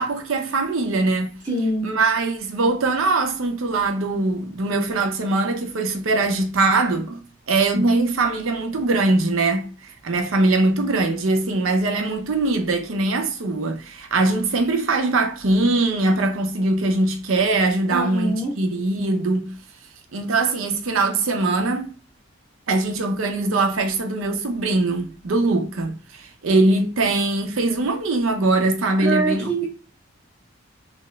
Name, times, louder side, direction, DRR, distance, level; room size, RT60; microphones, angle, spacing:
voice 1, 0.0-1.4 1.8-7.2 7.5-9.7 10.0-19.5 20.1-21.9 22.7-29.6, right 2 dB, 80° right, 0.6 m, -22 dB
voice 2, 1.5-1.9 17.9-18.5 29.0-29.6, right 2 dB, 20° right, 0.7 m, -24 dB
2.8 x 2.3 x 3.1 m
head